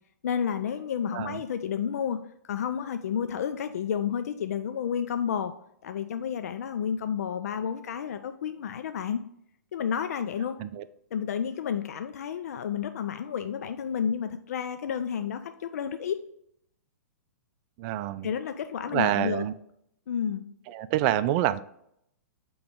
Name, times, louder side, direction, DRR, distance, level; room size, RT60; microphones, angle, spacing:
voice 1, 0.2-5.6 5.8-9.2 9.7-10.6 11.1-16.3 18.2-19.4 20.1-20.4, left 8 dB, 65° left, 9 dB, 0.4 m, -31 dB
voice 2, 17.8-18.3 18.9-19.5 20.7-21.6, right 13 dB, 40° right, 14 dB, 0.4 m, -27 dB
8.3 x 3.1 x 3.6 m, 0.73 s
figure-of-eight pair, 115°, 9 cm